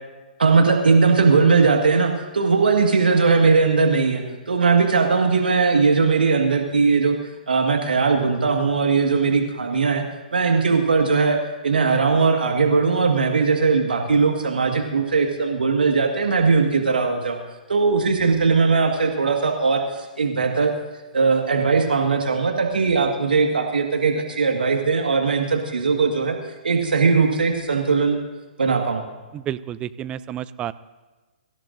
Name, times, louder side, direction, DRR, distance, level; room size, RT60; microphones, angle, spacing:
voice 1, 0.4-7.2 7.5-10.1 10.3-11.4 11.6-17.4 17.7-20.7 21.1-26.4 26.6-28.2 28.6-29.0, right 4 dB, 75° right, 3 dB, 1.8 m, -19 dB
voice 2, 29.3-30.7, right 11 dB, 20° right, 16 dB, 0.4 m, -30 dB
24.0 x 15.0 x 2.6 m, 1.2 s
figure-of-eight pair, 130°, 5 cm